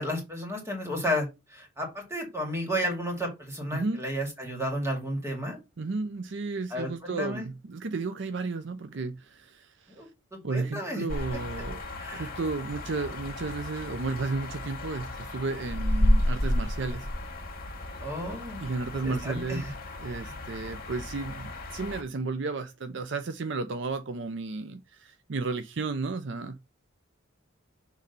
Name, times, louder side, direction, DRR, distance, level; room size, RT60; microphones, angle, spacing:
voice 1, 0.0-5.6 6.7-7.5 10.0-11.0 12.0-12.3 18.0-18.7 18.9-19.6 20.2-20.4, equal, 15° right, 2.3 m, -32 dB
voice 2, 3.7-4.0 5.8-10.0 10.4-11.8 12.1-17.1 18.6-19.7 20.0-26.6, right 3 dB, 60° right, 0.5 m, -33 dB
sound 1, 11.1-22.0, left 1 dB, 45° left, 1.9 m, -32 dB
6.5 x 3.2 x 5.3 m
head